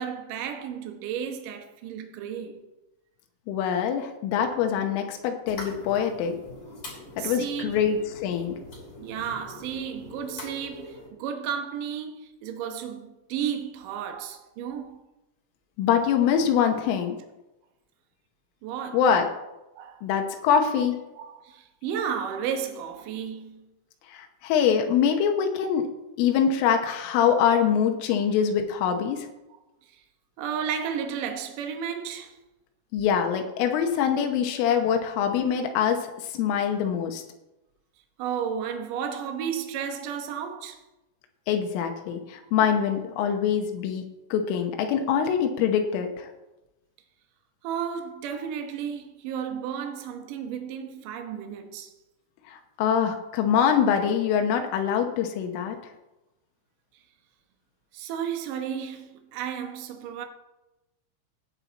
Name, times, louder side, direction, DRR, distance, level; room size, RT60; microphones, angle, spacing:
voice 1, 0.0-2.6 7.2-7.8 9.0-15.0 18.6-19.0 19.8-20.0 21.2-23.7 29.5-29.6 29.9-30.0 30.4-32.4 36.4-36.6 38.2-40.8 47.6-51.9 57.9-60.3, right 8 dB, 85° right, 1.8 m, -33 dB
voice 2, 3.5-6.4 7.2-8.6 15.8-17.2 18.9-19.3 20.0-21.0 24.1-25.9 26.2-29.3 32.9-37.2 41.5-44.0 44.3-46.3 52.5-55.8, left 8 dB, 90° left, 3.6 m, -24 dB
sound 1, 5.5-11.1, left 2 dB, 30° left, 2.5 m, -43 dB
17.5 x 7.5 x 4.1 m
omnidirectional pair, 5.6 m